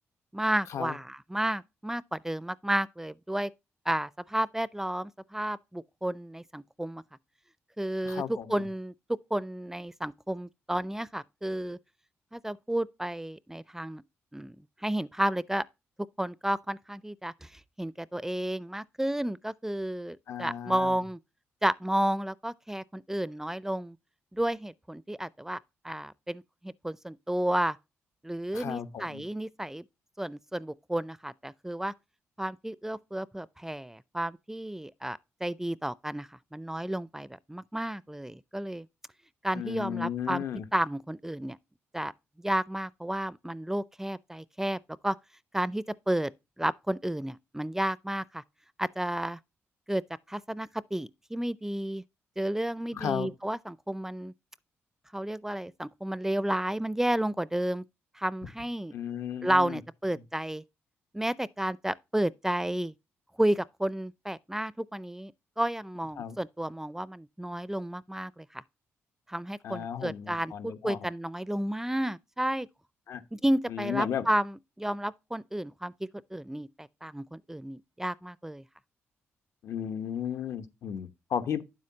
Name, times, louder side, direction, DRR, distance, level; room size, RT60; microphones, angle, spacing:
voice 1, 0.3-3.5 3.9-7.0 7.8-8.9 9.3-11.8 12.3-14.0 14.3-14.6 14.8-15.6 16.2-21.2 21.6-24.0 24.3-25.6 25.8-27.8 28.2-29.8 30.2-31.9 32.4-38.9 39.4-40.4 40.7-41.6 41.9-42.1 42.4-45.2 45.5-46.3 46.6-48.4 48.8-49.4 49.9-50.0 50.3-52.0 52.4-54.3 55.1-57.8 58.2-58.9 59.4-60.6 61.1-62.9 63.4-68.6 69.3-72.7 73.3-75.9 76.3-78.6, right 1 dB, 10° right, 0.4 m, -32 dB
voice 2, 8.0-8.5 20.3-21.0 28.5-29.2 39.5-40.7 52.9-53.3 58.9-59.8 66.2-66.4 69.6-71.1 73.1-73.2 73.7-74.2 79.6-81.6, left 9 dB, 70° left, 1.0 m, -34 dB
9.2 x 7.6 x 2.8 m
cardioid pair, 70°, 5 cm